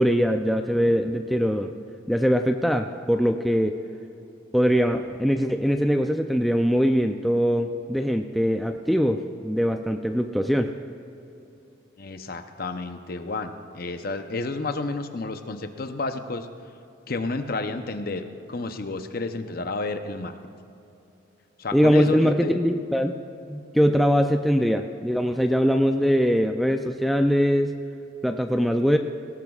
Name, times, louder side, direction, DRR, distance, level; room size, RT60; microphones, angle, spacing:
voice 1, 0.0-1.7 2.1-3.7 4.5-10.7 21.7-23.1 23.5-27.7 28.2-29.0, equal, ahead, 4 dB, 0.3 m, -22 dB
voice 2, 12.0-16.5 17.1-20.3 21.6-22.5, left 3 dB, 45° left, 8 dB, 0.7 m, -31 dB
19.5 x 17.5 x 2.4 m, 2.7 s
head